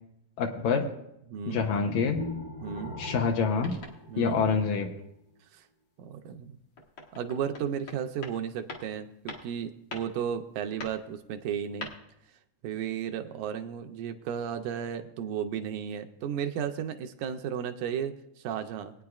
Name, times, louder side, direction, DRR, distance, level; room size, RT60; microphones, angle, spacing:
voice 1, 0.4-0.9 1.5-2.2 3.0-3.8 4.2-4.9, left 5 dB, 75° left, 3 dB, 2.0 m, -26 dB
voice 2, 1.3-1.6 2.6-3.0 4.1-4.4 5.5-5.6 6.0-6.6 7.1-11.9 12.6-18.9, right 8 dB, 80° right, 6 dB, 2.0 m, -34 dB
sound 1, 1.7-4.9, left 2 dB, 30° right, 0.9 m, -40 dB
sound 2, 3.6-4.1 6.3-8.4 8.7-9.0 9.3-9.6 9.9-10.2 10.8-11.1 11.8-12.0, left 3 dB, 50° left, 1.5 m, -43 dB
21.0 x 9.3 x 2.4 m, 0.79 s
omnidirectional pair, 3.7 m